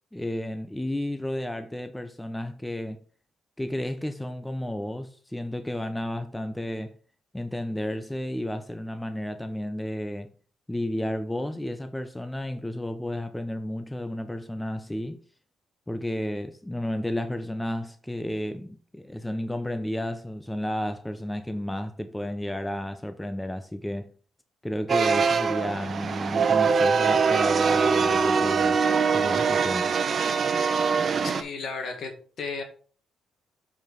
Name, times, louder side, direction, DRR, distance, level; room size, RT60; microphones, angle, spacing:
voice 1, 0.1-3.0 3.6-7.0 7.3-10.3 10.7-15.2 15.9-24.1 24.6-28.8 29.1-29.9, left 1 dB, 5° left, 0.6 m, -32 dB
sound 1, 24.9-31.4, right 5 dB, 45° right, 0.7 m, -23 dB
voice 2, 31.2-32.6, left 4 dB, 60° left, 1.8 m, -34 dB
7.1 x 4.7 x 4.6 m
cardioid pair, 90°, 0 cm